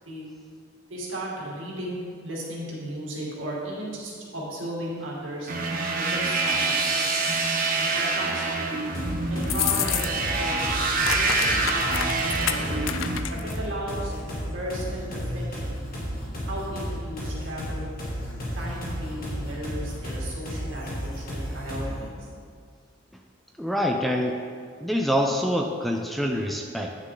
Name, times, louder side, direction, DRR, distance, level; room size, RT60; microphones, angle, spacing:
voice 1, 0.9-5.6 6.0-7.1 7.7-8.5 9.3-14.1 14.5-15.8 16.5-17.9 18.6-22.1, right 1 dB, 75° right, -5 dB, 2.4 m, -35 dB
sound 1, 5.5-13.2, right 3 dB, 45° right, 0.9 m, -26 dB
sound 2, 8.9-22.1, equal, 50° left, 2.3 m, -33 dB
sound 3, 9.4-10.4 10.6-13.6, left 10 dB, 75° left, 0.4 m, -29 dB
voice 2, 23.6-24.4 24.8-26.9, equal, ahead, 2 dB, 0.4 m, -25 dB
9.8 x 6.4 x 3.9 m, 2.1 s
head